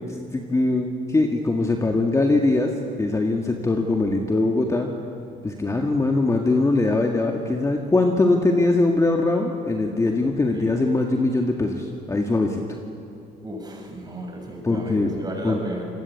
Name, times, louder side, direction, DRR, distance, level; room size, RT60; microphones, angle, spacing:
voice 1, 0.3-2.7 3.0-4.9 5.4-12.6 14.6-15.6, left 2 dB, 20° left, 2 dB, 1.9 m, -22 dB
voice 2, 10.1-10.8 13.4-15.8, right 1 dB, 25° right, 0 dB, 7.2 m, -35 dB
26.0 x 20.0 x 8.5 m, 2.6 s
cardioid pair, 110°, 17 cm